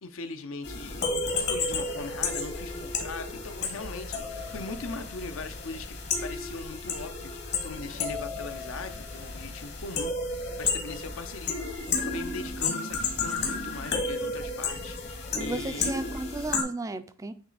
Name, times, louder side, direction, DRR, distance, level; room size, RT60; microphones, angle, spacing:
voice 1, 0.0-1.1 1.5-15.9, left 3 dB, 75° left, 9 dB, 0.7 m, -40 dB
sound 1, 0.6-16.6, left 4 dB, 55° left, 1.4 m, -32 dB
voice 2, 15.4-17.3, right 2 dB, 15° right, 11 dB, 0.3 m, -34 dB
8.9 x 3.1 x 4.0 m, 0.42 s
head